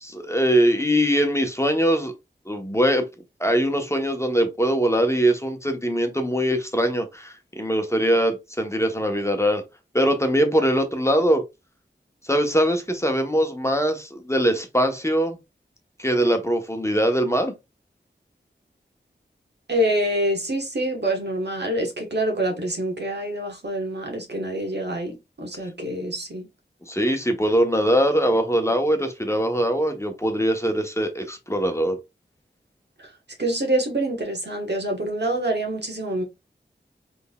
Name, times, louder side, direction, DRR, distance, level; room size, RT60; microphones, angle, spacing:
voice 1, 0.0-2.1 2.5-3.0 3.4-9.6 9.9-11.4 12.3-15.4 16.0-17.5 26.9-32.0, equal, 15° left, 0.9 m, -22 dB
voice 2, 19.7-26.5 33.4-36.2, right 1 dB, 65° right, 1.3 m, -26 dB
3.7 x 3.5 x 2.3 m
wide cardioid pair, 45°, 19 cm